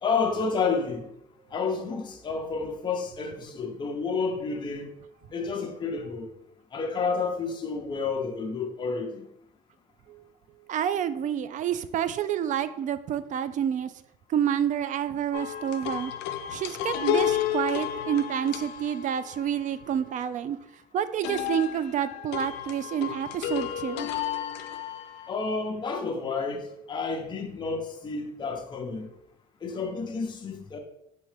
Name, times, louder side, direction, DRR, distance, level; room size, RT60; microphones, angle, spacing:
voice 1, 0.0-1.1 1.5-4.9 5.3-6.3 6.7-9.2 25.3-29.1 29.6-30.8, left 4 dB, 25° left, 0.7 m, -30 dB
voice 2, 10.7-13.9 14.3-16.1 16.5-20.6 20.9-24.1, right 9 dB, 50° right, 0.4 m, -28 dB
sound 1, 15.3-20.0 21.2-25.3, left 11 dB, 90° left, 0.4 m, -32 dB
4.4 x 3.5 x 3.4 m
cardioid pair, 110°, 17 cm